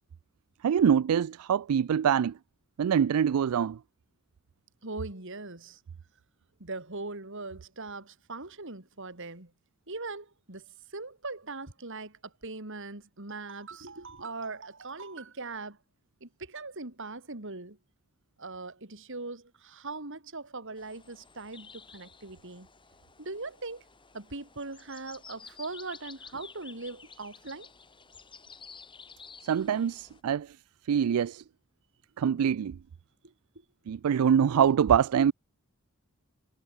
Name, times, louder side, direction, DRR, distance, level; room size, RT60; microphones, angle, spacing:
voice 1, 0.6-2.4 2.8-3.8 29.4-30.5 30.9-31.4 32.2-32.8 33.9-35.3, right 8 dB, 85° right, 0.4 m, -24 dB
voice 2, 4.8-5.8 6.6-9.5 9.9-10.6 10.9-15.8 16.2-17.8 18.4-22.7 23.2-23.8 24.1-27.7, right 3 dB, 60° right, 3.2 m, -40 dB
sound 1, 20.8-30.2, left 5 dB, 20° left, 4.1 m, -52 dB
head